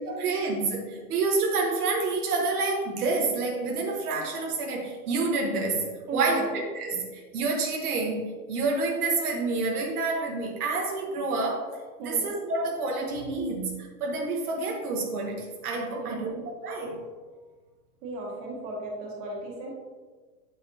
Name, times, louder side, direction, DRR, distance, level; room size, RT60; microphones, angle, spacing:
voice 1, 0.0-6.4 6.7-11.7 12.0-16.3 16.6-17.0, right 3 dB, 75° right, 0 dB, 1.4 m, -28 dB
voice 2, 6.1-6.5 12.0-12.3 16.0-16.3 18.0-19.7, right 2 dB, 35° right, -3 dB, 2.1 m, -35 dB
8.5 x 6.9 x 2.9 m, 1.4 s
supercardioid pair, 160°, 44 cm